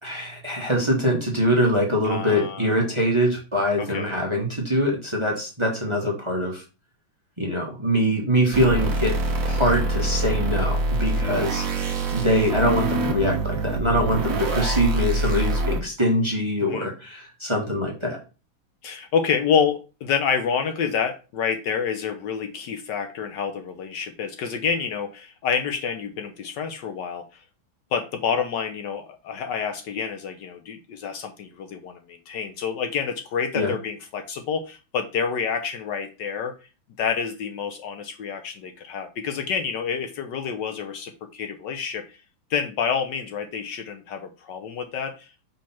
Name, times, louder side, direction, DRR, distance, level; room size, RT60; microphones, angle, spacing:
voice 1, 0.0-6.6 7.4-9.1 9.4-11.7 12.1-18.2 33.6-33.7, equal, 15° right, -1 dB, 1.2 m, -23 dB
voice 2, 2.0-2.8 3.8-4.2 16.6-16.9 18.8-27.4 27.9-36.5 37.0-42.2 42.5-45.3, left 6 dB, 70° left, 6 dB, 1.3 m, -28 dB
sound 1, 8.5-15.8, right 2 dB, 50° right, 1.4 m, -25 dB
5.3 x 3.4 x 5.7 m, 0.32 s
omnidirectional pair, 2.2 m